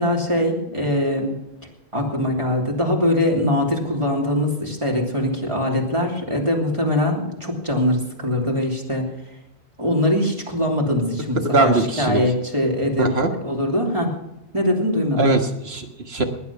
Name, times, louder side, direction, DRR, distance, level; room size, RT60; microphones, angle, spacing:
voice 1, 0.0-1.3 1.9-9.1 9.8-13.1 13.4-14.1 14.5-15.2, left 1 dB, 25° right, 0 dB, 3.2 m, -22 dB
voice 2, 11.4-12.2 13.0-13.3 15.2-16.2, right 2 dB, 65° right, 6 dB, 1.9 m, -20 dB
19.5 x 10.0 x 5.8 m, 0.91 s
omnidirectional pair, 1.1 m